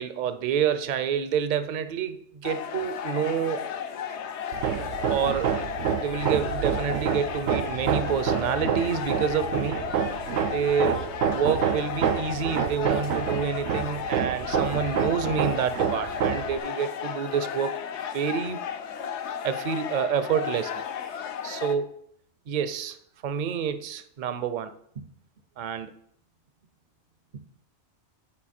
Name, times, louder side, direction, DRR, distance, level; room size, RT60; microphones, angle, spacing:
voice 1, 0.0-3.6 5.1-5.6 6.0-17.7 18.1-18.6 19.4-20.7 21.1-22.0 22.5-23.0 23.2-25.1 25.6-25.9 27.3-27.4, right 7 dB, 50° right, 0.6 m, -28 dB
sound 1, 2.4-21.8, left 8 dB, 75° left, 0.9 m, -34 dB
Hammer, 4.5-16.6, right 8 dB, 80° right, 0.9 m, -28 dB
8.7 x 4.7 x 4.3 m
omnidirectional pair, 1.2 m